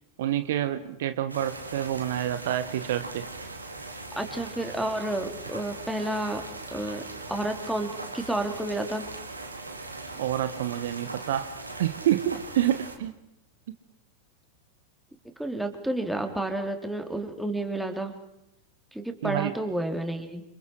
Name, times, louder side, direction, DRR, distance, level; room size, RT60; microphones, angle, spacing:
voice 1, 0.2-3.2 10.2-11.5 11.8-13.1 19.2-19.5, right 12 dB, 55° right, 12 dB, 1.4 m, -28 dB
sound 1, 1.3-13.0, right 2 dB, 80° right, 3.8 m, -40 dB
voice 2, 4.2-6.4 6.7-7.0 7.3-9.0 15.4-18.2 18.9-20.4, right 1 dB, 5° right, 5 dB, 3.6 m, -30 dB
29.5 x 28.0 x 4.8 m, 0.84 s
figure-of-eight pair, 90°, 0 cm